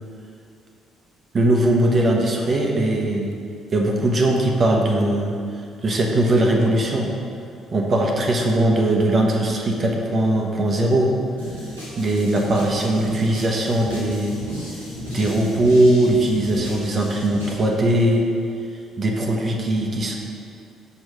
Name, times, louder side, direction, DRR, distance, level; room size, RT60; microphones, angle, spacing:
voice 1, 1.3-3.4 3.7-5.4 5.8-7.1 7.7-11.1 12.0-14.4 15.1-18.3 19.0-20.1, right 1 dB, 40° right, 0 dB, 0.9 m, -20 dB
sound 1, 11.4-17.6, left 1 dB, 90° right, 1.6 m, -34 dB
6.7 x 4.6 x 5.0 m, 2.4 s
figure-of-eight pair, 45°, 0 cm